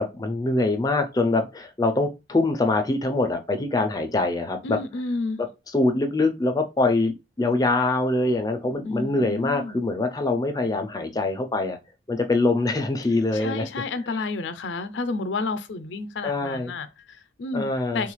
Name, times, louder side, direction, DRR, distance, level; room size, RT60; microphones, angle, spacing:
voice 1, 0.0-4.8 5.7-11.8 12.1-13.7 16.2-16.7 17.5-18.0, left 2 dB, 20° left, 0.4 m, -24 dB
voice 2, 4.6-5.4 8.8-9.8 13.3-17.7 17.9-18.1, left 3 dB, 80° left, 0.4 m, -30 dB
3.5 x 2.4 x 3.0 m
head